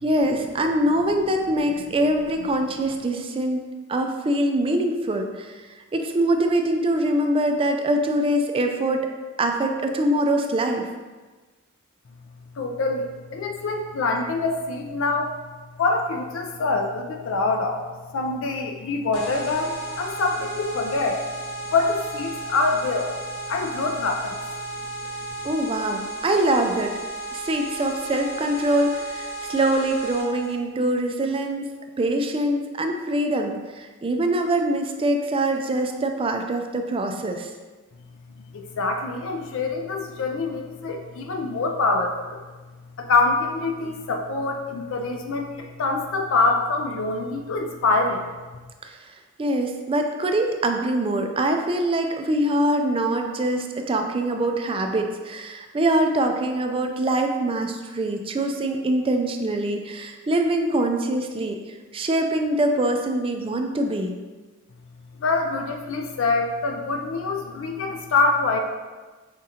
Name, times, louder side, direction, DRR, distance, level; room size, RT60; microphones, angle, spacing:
voice 1, 0.0-3.6 3.9-5.6 5.9-9.1 9.4-10.9 25.4-26.9 27.3-31.7 32.0-37.5 48.8-49.0 49.4-61.6 61.9-64.1, right 1 dB, 25° right, 4 dB, 0.4 m, -23 dB
voice 2, 12.6-15.3 15.8-17.8 18.1-21.2 21.7-23.1 23.5-24.4 38.5-42.4 43.0-48.2 65.2-68.6, left 3 dB, 65° left, 3 dB, 0.4 m, -25 dB
sound 1, 19.1-30.5, right 2 dB, 90° left, 1.2 m, -34 dB
5.1 x 3.7 x 2.8 m, 1.3 s
head